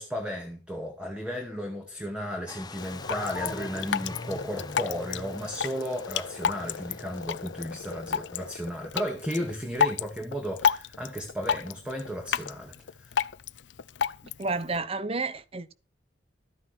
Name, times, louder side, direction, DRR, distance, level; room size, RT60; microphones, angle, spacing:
voice 1, 0.0-13.2, equal, 5° right, 2.1 m, -34 dB
sound 1, 2.5-8.7, left 3 dB, 25° left, 0.7 m, -42 dB
Drip, 2.8-14.8, left 7 dB, 75° left, 0.5 m, -32 dB
voice 2, 14.4-15.7, right 3 dB, 35° right, 0.7 m, -31 dB
13.0 x 9.4 x 4.5 m
head